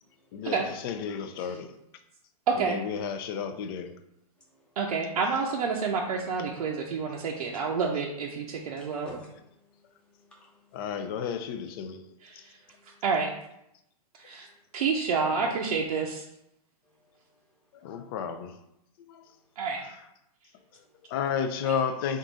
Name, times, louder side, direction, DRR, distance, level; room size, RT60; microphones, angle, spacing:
voice 1, 0.3-1.8 2.6-4.0 6.6-6.8 10.7-12.5 15.2-15.6 17.7-18.6 19.0-19.3 19.8-20.0 20.7-22.2, left 7 dB, 35° left, 0.4 m, -33 dB
voice 2, 2.5-2.8 4.8-9.1 12.3-12.6 13.0-13.3 14.1-14.5 14.7-16.2 19.6-19.8, right 5 dB, 70° right, 0.6 m, -28 dB
voice 3, 8.8-9.3 10.1-10.6 12.6-13.0 17.0-17.4 20.6-20.7 20.9-21.0, right 1 dB, 5° left, 0.9 m, -48 dB
3.6 x 2.5 x 3.9 m
hypercardioid pair, 140°, 20 cm